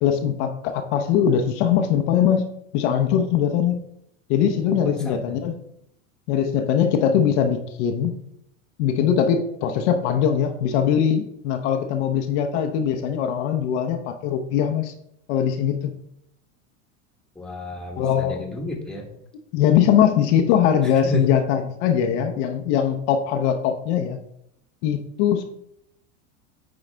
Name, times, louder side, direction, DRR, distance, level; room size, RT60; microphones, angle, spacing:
voice 1, 0.0-3.8 4.3-5.6 6.3-8.1 8.8-14.9 15.3-15.9 18.0-18.4 19.5-24.2 24.8-25.5, left 8 dB, 60° left, 6 dB, 0.8 m, -21 dB
voice 2, 4.7-5.4 17.4-19.1 21.0-21.3, left 1 dB, ahead, 0 dB, 1.2 m, -31 dB
9.0 x 4.0 x 3.3 m, 0.75 s
hypercardioid pair, 105°, 38 cm